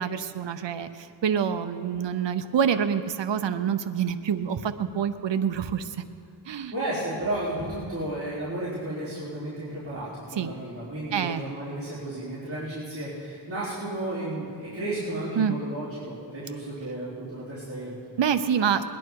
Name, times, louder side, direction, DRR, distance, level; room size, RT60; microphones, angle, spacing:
voice 1, 0.0-6.0 6.5-6.7 10.4-10.5 11.1-11.4 15.4-15.5 18.2-18.8, right 7 dB, 70° right, 9 dB, 0.7 m, -26 dB
voice 2, 6.5-18.1, right 1 dB, 30° right, -12 dB, 4.2 m, -33 dB
20.0 x 11.0 x 4.7 m, 2.3 s
wide cardioid pair, 80°, 45 cm